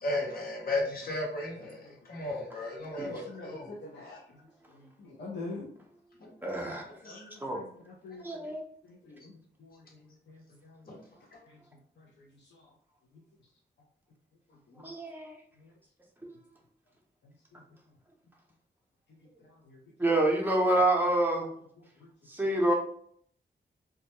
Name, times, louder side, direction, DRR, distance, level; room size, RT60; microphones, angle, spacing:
voice 1, 0.0-3.7 4.1-4.2 6.2-6.3 7.0-7.2 10.9-11.0 11.3-11.4, left 2 dB, 55° left, -2 dB, 0.8 m, -35 dB
voice 2, 1.8-2.3 2.9-4.4 4.7-5.7 7.0-8.5 8.8-11.0 11.5-11.6 12.0-12.7 14.5-14.9 15.6-15.7 17.5-17.6 19.4-19.8 22.0-22.1, left 2 dB, 80° left, -1 dB, 0.4 m, -47 dB
voice 3, 6.4-6.8 7.4-7.6 8.2-8.6 14.8-15.4 20.0-21.5 22.3-22.7, right 1 dB, 10° right, 0 dB, 0.5 m, -27 dB
2.2 x 2.0 x 2.9 m, 0.62 s
wide cardioid pair, 110°, 18 cm